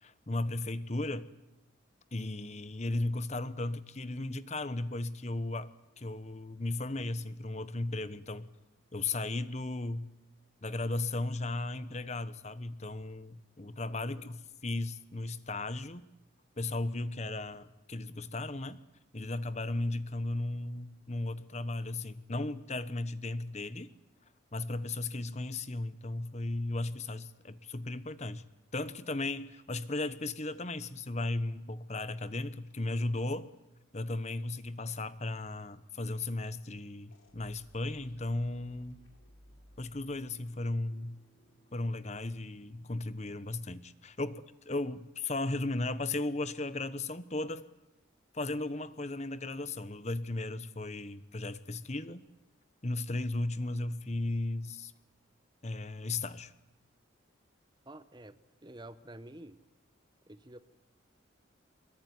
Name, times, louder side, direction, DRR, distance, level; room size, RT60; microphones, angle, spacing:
voice 1, 0.0-1.3 2.1-5.7 6.0-8.5 8.9-10.1 10.6-16.1 16.6-18.8 19.1-23.9 24.5-28.4 28.7-33.5 33.9-39.0 39.8-41.2 41.7-47.7 48.3-52.2 52.8-54.9 55.6-56.5, left 2 dB, 35° left, 14 dB, 1.1 m, -36 dB
sound 1, 37.1-43.7, equal, 75° left, 4.8 m, -62 dB
voice 2, 57.9-59.6 60.3-60.6, right 1 dB, 20° right, 13 dB, 0.9 m, -49 dB
24.0 x 22.5 x 9.7 m, 0.92 s
head